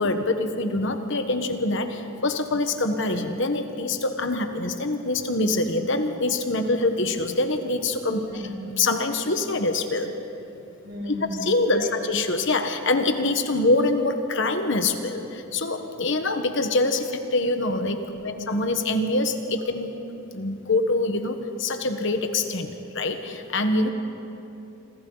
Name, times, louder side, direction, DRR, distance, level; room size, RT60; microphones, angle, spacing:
voice 1, 0.0-8.2 8.8-10.1 11.0-11.1 11.4-19.9 20.3-23.9, left 2 dB, 60° left, 6 dB, 1.3 m, -25 dB
voice 2, 8.2-8.5 10.8-12.0 18.1-18.3, equal, 50° right, -1 dB, 5.1 m, -36 dB
27.0 x 26.0 x 4.0 m, 2.8 s
head